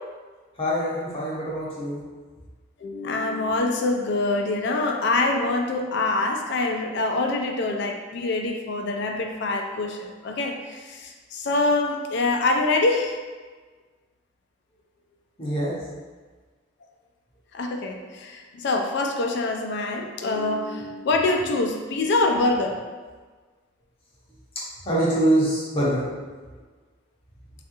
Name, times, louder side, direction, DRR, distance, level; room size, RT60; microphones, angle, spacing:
voice 1, 0.6-2.0 15.4-15.7 24.8-26.0, right 1 dB, 30° left, -6 dB, 0.7 m, -24 dB
voice 2, 2.8-13.2 17.5-22.8, left 2 dB, 60° left, 3 dB, 0.4 m, -25 dB
3.4 x 2.4 x 2.8 m, 1.4 s
head